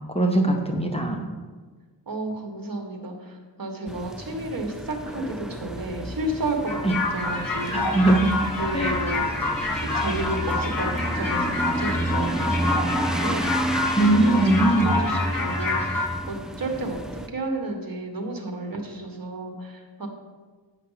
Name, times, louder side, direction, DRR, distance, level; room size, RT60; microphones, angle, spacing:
voice 1, 0.1-1.2 6.8-6.9 7.9-8.3 8.7-9.0 13.9-14.9, right 2 dB, 15° left, 2 dB, 0.8 m, -20 dB
voice 2, 2.1-6.8 7.1-8.1 8.6-9.4 9.8-13.7 14.0-20.1, right 2 dB, 50° right, 4 dB, 1.4 m, -32 dB
sound 1, 3.9-17.3, right 1 dB, ahead, 0.3 m, -30 dB
sound 2, 6.7-16.1, left 2 dB, 50° left, 2.0 m, -27 dB
8.1 x 5.7 x 5.7 m, 1.4 s
wide cardioid pair, 105°, 44 cm